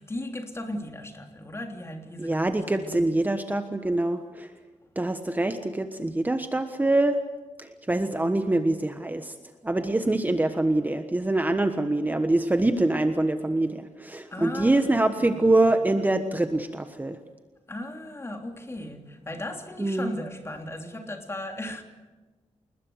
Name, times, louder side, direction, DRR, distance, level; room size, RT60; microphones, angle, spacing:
voice 1, 0.0-3.2 4.8-4.9 14.3-15.6 17.7-21.8, left 1 dB, 20° left, 3.3 m, -37 dB
voice 2, 2.2-4.5 4.9-7.2 7.6-9.3 9.6-17.2 19.8-20.1, right 2 dB, 15° right, 1.3 m, -24 dB
29.5 x 20.5 x 8.0 m
wide cardioid pair, 125°, 12 cm